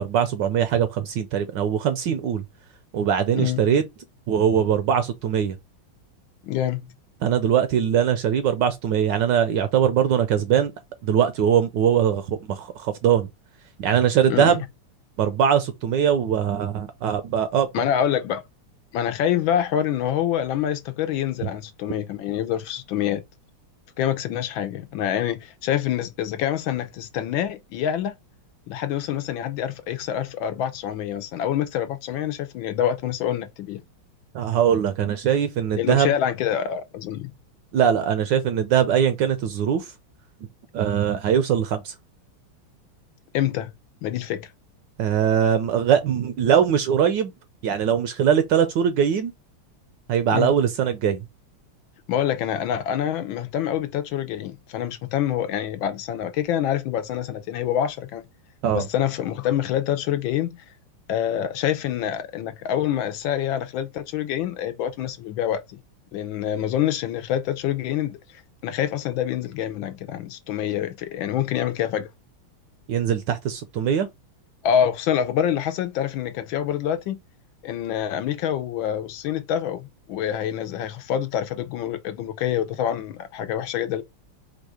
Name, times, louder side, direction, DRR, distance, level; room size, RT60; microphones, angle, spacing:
voice 1, 0.0-2.4 2.9-3.8 4.3-5.6 7.2-10.7 11.0-13.3 13.8-14.6 15.2-17.7 34.3-36.1 37.7-39.9 40.7-41.9 45.0-47.3 47.6-49.3 50.1-51.2 58.6-58.9 72.9-74.1, right 8 dB, 70° right, 1.1 m, -21 dB
voice 2, 3.3-3.7 6.4-6.9 14.3-14.6 17.7-18.4 18.9-23.2 24.0-28.1 28.7-33.8 35.8-37.3 43.3-43.7 44.0-44.4 50.3-50.6 52.1-58.2 58.7-60.6 61.1-65.8 66.1-68.2 68.6-72.1 74.6-77.2 77.6-84.0, left 10 dB, 75° left, 1.3 m, -26 dB
4.5 x 2.4 x 4.8 m
omnidirectional pair, 2.3 m